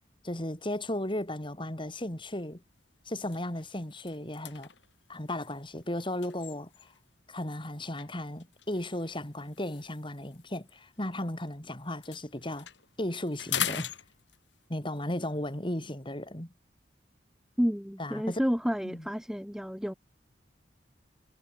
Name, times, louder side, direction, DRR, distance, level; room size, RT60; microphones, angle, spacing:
voice 1, 0.2-2.6 3.1-4.7 5.1-6.9 7.3-12.7 13.0-13.9 14.7-16.5 18.0-18.4 18.8-19.1, left 1 dB, 25° left, 3.8 m, -35 dB
sound 1, 2.2-2.3 2.7-2.8 3.2-7.1 8.0-11.5 11.8-14.7, left 10 dB, 75° left, 3.9 m, -41 dB
voice 2, 17.6-19.9, equal, 5° right, 1.9 m, -30 dB
head